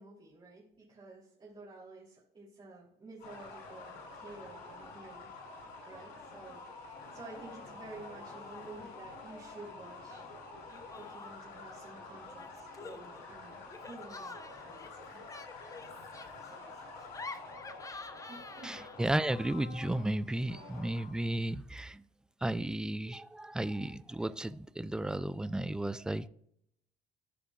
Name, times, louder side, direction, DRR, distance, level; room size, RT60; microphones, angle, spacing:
voice 1, 0.0-5.3 5.8-10.3 11.0-15.2 15.5-15.6 16.8-16.9 18.3-18.8, right 2 dB, 30° right, 3.1 m, -51 dB
sound 1, 3.2-21.3, left 3 dB, 85° left, 3.4 m, -48 dB
Laughter, 6.2-6.6 6.9-7.5 7.9-8.8 10.1-11.6 12.3-19.2, left 3 dB, 20° left, 0.8 m, -49 dB
voice 2, 18.6-22.0 22.4-26.3, right 1 dB, 5° right, 0.3 m, -34 dB
15.0 x 5.0 x 2.4 m
cardioid pair, 110°, 17 cm